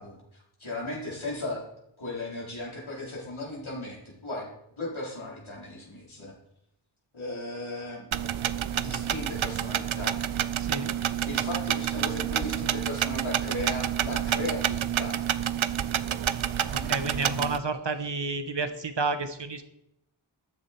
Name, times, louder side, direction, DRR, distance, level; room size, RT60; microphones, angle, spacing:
voice 1, 0.0-1.6 2.0-4.5 4.8-6.3 7.1-8.1 8.7-10.2 11.3-15.2 16.7-16.9 18.0-18.1, left 1 dB, 80° left, -4 dB, 4.5 m, -36 dB
sound 1, 8.1-17.6, right 9 dB, 80° right, 0.6 m, -29 dB
voice 2, 10.6-10.9 16.7-19.6, right 3 dB, 60° right, 9 dB, 1.4 m, -31 dB
14.0 x 10.0 x 4.6 m, 0.80 s
wide cardioid pair, 45°, 47 cm